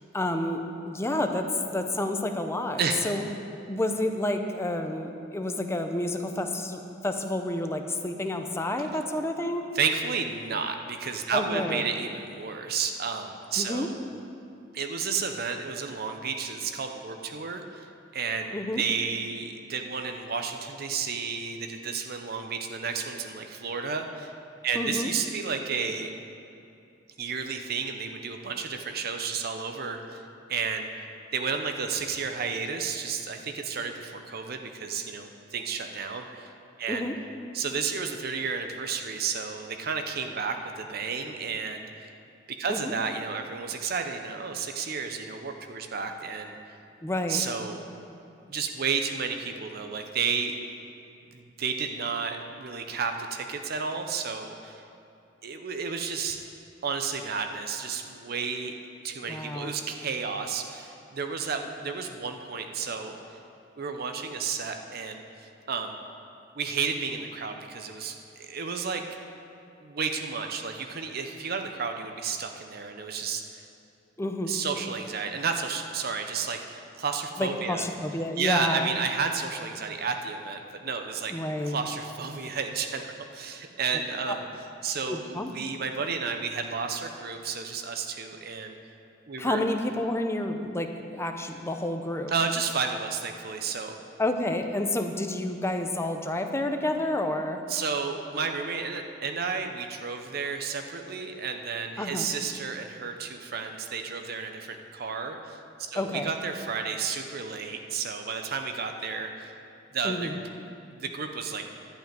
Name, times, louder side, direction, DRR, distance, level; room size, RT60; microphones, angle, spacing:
voice 1, 0.0-3.2 3.7-9.7 11.3-11.8 13.6-13.9 18.5-18.8 24.7-25.1 36.9-37.2 42.7-42.9 47.0-47.4 59.3-59.7 74.2-74.5 77.4-78.9 81.3-81.8 84.3-84.4 85.1-85.5 89.4-92.3 94.2-97.6 102.0-102.3 106.0-106.3 110.0-110.3, left 1 dB, 15° left, 5 dB, 0.7 m, -29 dB
voice 2, 2.8-3.1 9.7-13.9 14.7-17.9 18.1-24.3 24.6-26.1 27.2-30.2 30.5-31.1 31.3-36.5 36.8-37.1 37.5-42.1 42.6-46.5 47.3-47.8 48.5-50.6 51.3-54.8 55.4-56.4 56.8-58.7 59.0-63.2 63.8-65.2 65.7-66.0 66.6-69.0 69.8-73.6 74.5-77.9 78.4-81.3 81.7-84.5 84.8-88.7 89.3-89.6 92.3-94.0 97.7-105.6 105.9-109.5 109.9-110.4 110.9-111.6, right 5 dB, 55° right, 5 dB, 0.7 m, -32 dB
11.5 x 5.6 x 9.0 m, 2.6 s
head